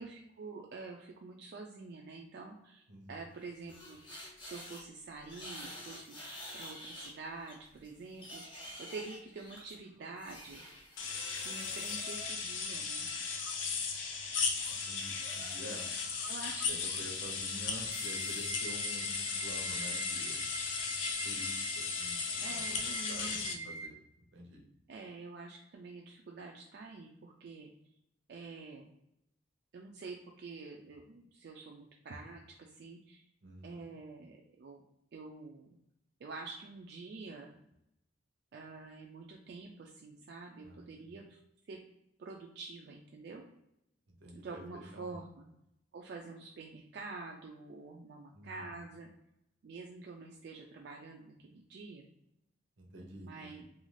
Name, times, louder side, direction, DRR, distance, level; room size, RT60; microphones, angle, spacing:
voice 1, 0.0-4.0 4.4-6.2 6.5-10.6 11.4-13.1 16.3-16.8 22.4-23.8 24.9-27.7 28.3-28.9 29.7-33.3 33.6-34.8 35.1-35.8 36.2-37.6 38.5-41.4 41.7-41.8 42.2-43.4 44.3-45.5 45.9-49.1 49.6-52.1 53.1-53.6, right 3 dB, 60° right, 0 dB, 0.3 m, -47 dB
voice 2, 2.9-3.2 14.7-15.9 16.6-20.4 21.2-22.2 22.5-22.8 23.1-24.0 24.3-24.6 33.4-33.9 40.6-41.1 44.2-45.2 48.3-48.8 52.8-53.6, equal, 90° right, 1 dB, 0.8 m, -49 dB
sound 1, 3.3-4.8 5.2-7.2 7.5-12.8 14.5-16.5 16.9-17.1 17.8-18.5, equal, 25° left, 0.8 m, -49 dB
sound 2, 11.0-23.5, left 5 dB, 80° left, 0.5 m, -36 dB
sound 3, 17.9-23.9, right 3 dB, 15° right, 0.6 m, -45 dB
2.5 x 2.3 x 3.2 m, 0.80 s
head